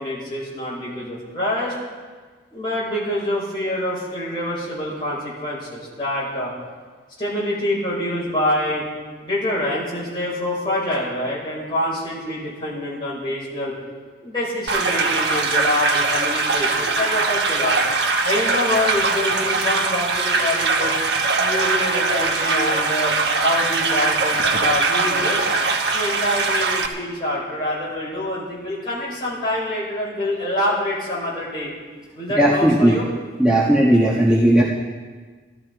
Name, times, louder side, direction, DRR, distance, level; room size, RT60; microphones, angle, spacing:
voice 1, 0.0-1.8 2.5-6.5 7.2-8.9 9.2-13.7 14.2-17.8 18.2-20.9 21.3-23.1 23.4-25.4 25.9-31.7 32.1-33.1, left 1 dB, 25° left, -6 dB, 5.5 m, -26 dB
sound 1, 14.7-26.9, right 3 dB, 70° right, 1.1 m, -21 dB
voice 2, 32.4-33.0 33.4-34.6, right 1 dB, 5° right, -6 dB, 1.3 m, -16 dB
14.5 x 13.5 x 4.7 m, 1.5 s
head